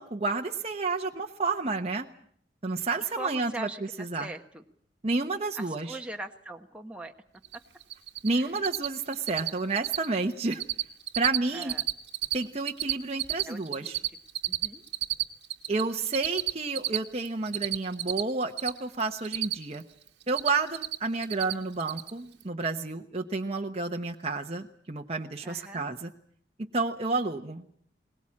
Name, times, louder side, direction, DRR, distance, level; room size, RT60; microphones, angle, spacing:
voice 1, 0.0-2.1 2.6-3.7 4.0-4.3 5.0-6.0 8.2-10.6 11.2-11.7 12.3-14.0 15.7-19.8 20.3-26.1 26.6-27.7, right 3 dB, 35° right, 2 dB, 1.0 m, -30 dB
voice 2, 3.1-4.6 5.5-7.1 7.5-7.6 8.3-8.7 11.5-11.8 13.5-13.9 14.4-14.8 25.4-25.9, right 1 dB, 5° right, 3 dB, 1.2 m, -41 dB
Cricket, 7.4-7.6 7.8-8.3 8.5-8.9 9.1-9.5 9.7-10.1 10.3-10.8 11.1-12.3 12.6-15.8 16.1-18.7 19.0-19.8 20.1-20.9 21.2-21.5 21.8-22.1, right 16 dB, 70° right, 1.4 m, -29 dB
21.5 x 19.5 x 8.7 m, 0.63 s
head